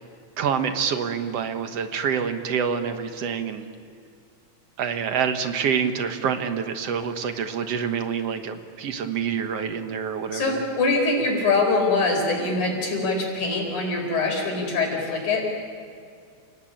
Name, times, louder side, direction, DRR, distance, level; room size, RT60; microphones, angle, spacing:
voice 1, 0.4-3.7 4.8-10.6, right 7 dB, 60° right, 7 dB, 2.3 m, -27 dB
voice 2, 10.3-15.5, left 3 dB, 85° left, 1 dB, 6.1 m, -23 dB
29.0 x 18.5 x 8.9 m, 2.3 s
omnidirectional pair, 3.4 m